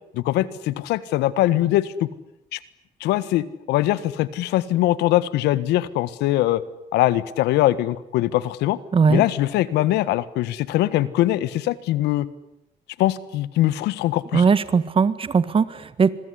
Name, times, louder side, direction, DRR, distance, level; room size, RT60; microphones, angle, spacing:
voice 1, 0.1-2.1 2.5-2.6 3.0-6.6 6.9-8.8 9.1-12.3 13.0-14.4, left 15 dB, 90° left, 16 dB, 1.5 m, -22 dB
voice 2, 8.9-9.2 14.3-16.1, right 5 dB, 30° right, 15 dB, 1.7 m, -19 dB
27.0 x 22.0 x 10.0 m, 0.86 s
cardioid pair, 110°, 17 cm